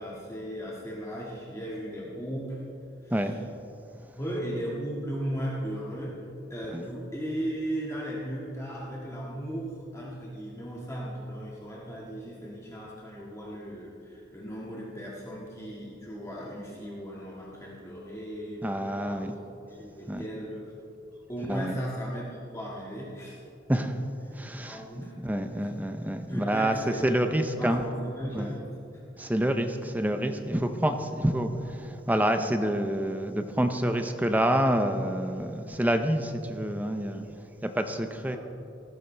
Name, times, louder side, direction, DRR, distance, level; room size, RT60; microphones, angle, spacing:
voice 1, 0.0-2.6 3.0-3.4 4.2-18.7 19.1-19.4 19.7-20.7 21.3-23.4 24.3-24.4 24.7-25.2 25.6-25.7 26.3-27.3 27.6-29.3, equal, 15° left, -5 dB, 1.7 m, -36 dB
voice 2, 18.6-19.3 20.1-20.2 21.5-21.8 23.7-24.1 24.3-27.8 28.3-28.5 29.2-37.3 37.6-38.4, right 1 dB, 10° right, 7 dB, 0.6 m, -28 dB
17.5 x 14.5 x 3.3 m, 2.7 s
head